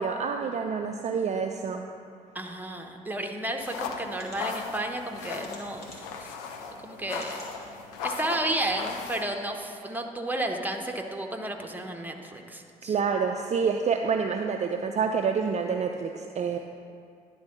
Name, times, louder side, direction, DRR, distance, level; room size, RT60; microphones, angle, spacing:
voice 1, 0.0-1.8 12.8-16.6, right 5 dB, 35° right, 4 dB, 0.5 m, -27 dB
voice 2, 2.3-6.3 6.6-7.4 8.0-12.9, right 1 dB, 10° right, 3 dB, 1.0 m, -32 dB
sound 1, 3.4-3.5 4.1-4.4 5.4-6.2 7.1-7.5 8.1-8.2 8.5-8.6, left 1 dB, 50° left, 1.9 m, -48 dB
sound 2, 3.6-9.2, left 5 dB, 75° left, 0.6 m, -37 dB
10.5 x 3.8 x 5.9 m, 2.4 s
figure-of-eight pair, 40°, 20 cm